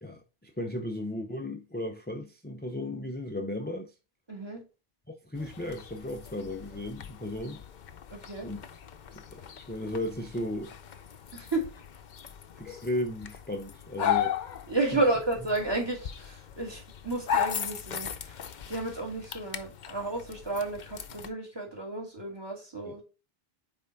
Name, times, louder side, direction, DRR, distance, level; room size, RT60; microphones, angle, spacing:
voice 1, 0.0-3.9 5.1-7.6 8.4-8.6 9.1-10.7 12.6-14.4 14.9-15.0 22.8-22.9, left 1 dB, 15° left, 0.4 m, -35 dB
voice 2, 4.3-4.6 8.1-8.5 11.3-11.7 14.7-18.4 18.7-23.0, right 2 dB, 25° right, 2.1 m, -32 dB
sound 1, 5.4-21.3, left 9 dB, 55° left, 0.7 m, -37 dB
5.5 x 4.4 x 3.9 m
omnidirectional pair, 1.0 m